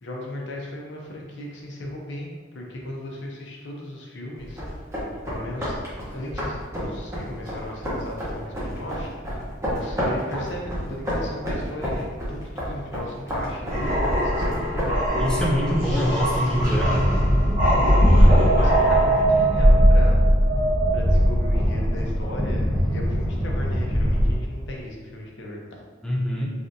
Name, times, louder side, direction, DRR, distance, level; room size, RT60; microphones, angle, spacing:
voice 1, 0.0-4.6 5.3-5.8 6.1-9.1 9.7-15.0 15.6-16.1 16.4-16.8 17.6-20.2 20.9-25.6, left 1 dB, 60° left, -1 dB, 0.6 m, -36 dB
sound 1, 4.4-14.9, equal, 15° right, 0.8 m, -31 dB
sound 2, 13.7-19.7, equal, 45° right, 1.0 m, -25 dB
voice 2, 15.2-16.9 26.0-26.5, equal, 5° left, -2 dB, 0.3 m, -24 dB
sound 3, 16.6-24.3, equal, 85° right, 0.9 m, -19 dB
3.3 x 2.6 x 2.6 m, 1.4 s
head